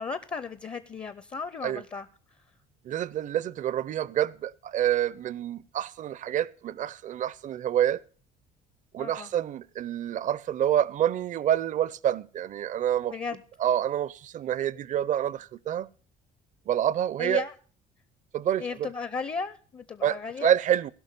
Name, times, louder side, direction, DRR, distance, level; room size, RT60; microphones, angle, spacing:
voice 1, 0.0-2.1 9.0-9.3 13.1-13.4 17.2-17.5 18.6-20.5, left 5 dB, 30° left, 0.7 m, -35 dB
voice 2, 2.8-8.0 8.9-13.1 13.6-15.9 16.7-17.4 18.3-18.9 20.0-20.9, right 10 dB, 50° right, 0.5 m, -27 dB
17.0 x 5.8 x 6.6 m
cardioid pair, 110°, 17 cm